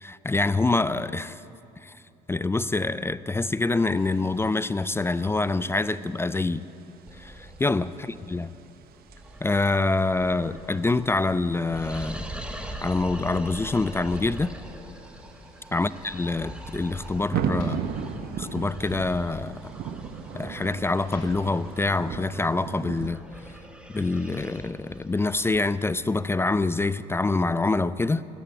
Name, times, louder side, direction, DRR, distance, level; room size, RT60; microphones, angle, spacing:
voice 1, 0.0-1.4 1.8-1.9 2.3-6.6 7.2-7.9 8.3-8.5 9.4-12.3 12.8-14.6 15.7-17.8 18.4-19.6 20.3-23.2 23.9-28.2, left 3 dB, 15° left, 16 dB, 0.4 m, -26 dB
sound 1, 3.8-23.1, right 7 dB, 60° right, 0.9 m, -39 dB
sound 2, 7.1-26.7, right 1 dB, 5° right, 1.5 m, -43 dB
sound 3, 17.2-21.9, left 2 dB, 75° left, 2.9 m, -48 dB
14.0 x 10.5 x 8.9 m, 2.8 s
hypercardioid pair, 70°, 18 cm